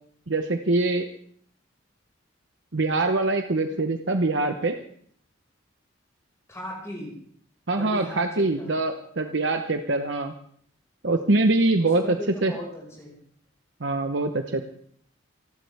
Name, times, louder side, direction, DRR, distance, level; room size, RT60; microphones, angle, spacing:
voice 1, 0.3-1.1 2.7-4.8 7.7-10.3 11.0-12.2 12.4-12.5 13.8-14.6, right 2 dB, 65° right, 5 dB, 1.0 m, -24 dB
voice 2, 6.5-7.1 7.7-8.7 11.8-13.2, equal, 15° left, -3 dB, 5.5 m, -38 dB
27.5 x 12.0 x 3.5 m, 0.62 s
head